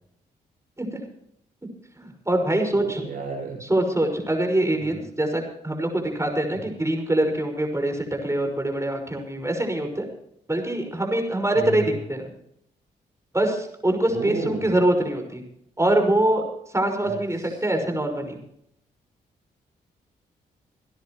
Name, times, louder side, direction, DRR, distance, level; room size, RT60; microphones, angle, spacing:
voice 1, 2.0-3.1 3.6-10.0 10.5-11.8 12.1-12.2 13.3-15.4 15.8-16.4 16.7-18.4, right 1 dB, 15° right, 4 dB, 5.6 m, -24 dB
voice 2, 2.7-3.7 4.8-5.0 11.5-11.9 14.1-14.7 17.0-17.1 17.4-17.6, right 3 dB, 90° right, -4 dB, 6.7 m, -33 dB
27.5 x 10.5 x 3.1 m, 0.73 s
hypercardioid pair, 45°, 19 cm